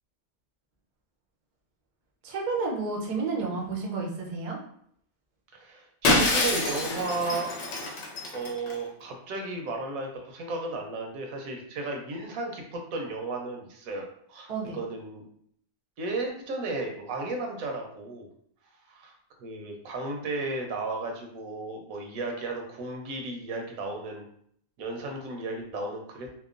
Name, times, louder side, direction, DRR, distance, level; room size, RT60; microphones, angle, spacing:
voice 1, 2.2-4.6 14.5-14.8, right 4 dB, 55° right, -1 dB, 0.4 m, -31 dB
voice 2, 5.5-7.5 8.3-15.3 16.0-18.3 18.9-19.1 19.4-24.2 24.8-26.3, right 3 dB, 85° right, 2 dB, 1.1 m, -34 dB
Shatter, 6.0-8.7, left 2 dB, 65° left, 0.8 m, -26 dB
2.8 x 2.1 x 2.4 m, 0.65 s
omnidirectional pair, 1.4 m